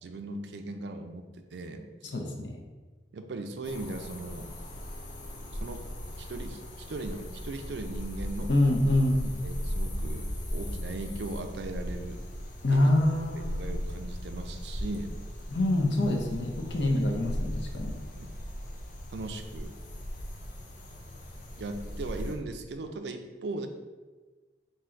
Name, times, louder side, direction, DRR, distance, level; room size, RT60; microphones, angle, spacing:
voice 1, 0.0-1.8 3.1-4.5 5.6-5.8 6.2-8.5 9.2-12.2 12.7-12.9 13.5-15.2 17.0-17.1 18.2-18.3 19.1-19.7 21.6-23.7, right 2 dB, 70° right, 6 dB, 0.4 m, -38 dB
voice 2, 2.1-2.6 8.5-9.2 12.6-13.7 15.5-18.0, left 1 dB, 85° left, 2 dB, 0.7 m, -26 dB
sound 1, 3.6-22.3, equal, 45° left, 0.6 m, -38 dB
3.8 x 2.7 x 4.3 m, 1.3 s
head